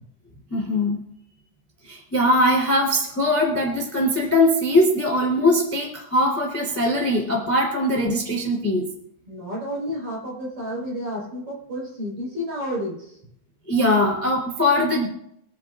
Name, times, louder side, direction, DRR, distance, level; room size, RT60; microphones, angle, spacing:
voice 1, 0.5-1.0 1.8-8.9 13.7-15.1, left 1 dB, 5° left, -1 dB, 2.7 m, -21 dB
voice 2, 9.3-13.2, equal, 35° right, -3 dB, 5.4 m, -31 dB
26.0 x 10.5 x 2.5 m, 0.73 s
omnidirectional pair, 4.7 m